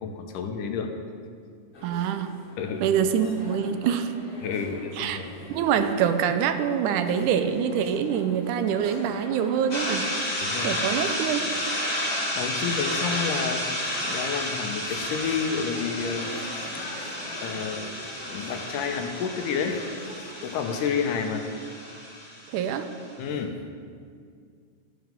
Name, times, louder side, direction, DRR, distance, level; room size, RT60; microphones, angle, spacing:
voice 1, 0.0-0.9 2.6-2.9 4.4-5.3 10.4-10.8 11.9-13.6 14.0-16.3 16.7-17.1 17.4-17.9 18.2-19.8 20.4-21.5 23.2-23.6, left 6 dB, 90° left, 5 dB, 2.5 m, -30 dB
sound 1, 1.7-21.2, left 1 dB, 40° left, 2.8 m, -44 dB
voice 2, 1.8-2.3 2.8-4.1 5.0-5.2 5.5-10.1 10.6-11.5 22.5-22.9, right 8 dB, 85° right, 9 dB, 2.1 m, -25 dB
sound 2, 9.7-23.0, left 1 dB, 20° left, 1.1 m, -31 dB
12.5 x 8.0 x 5.3 m, 2.2 s
omnidirectional pair, 3.6 m